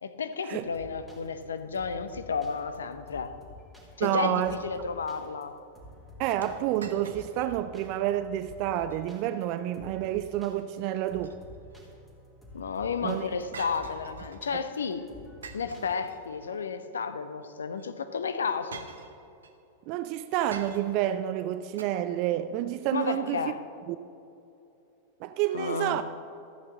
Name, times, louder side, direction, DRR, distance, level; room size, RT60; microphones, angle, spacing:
voice 1, 0.0-3.3 4.0-5.5 12.5-15.1 15.5-18.8 22.9-23.6 25.5-26.0, left 5 dB, 70° left, 0.7 m, -32 dB
sound 1, 0.6-16.7, equal, ahead, 3.3 m, -51 dB
voice 2, 4.0-4.6 6.2-11.3 13.0-13.3 19.9-23.4 23.9-24.0 25.2-26.0, right 12 dB, 45° right, 0.4 m, -29 dB
sound 2, 6.4-7.6 8.0-8.1 8.7-9.0 10.9-11.8 13.5-14.5 15.4-16.6 17.7-17.9 18.7-19.6 20.5-21.1 21.8-21.9, right 5 dB, 70° right, 0.9 m, -46 dB
14.5 x 6.2 x 7.2 m
figure-of-eight pair, 90°, 0 cm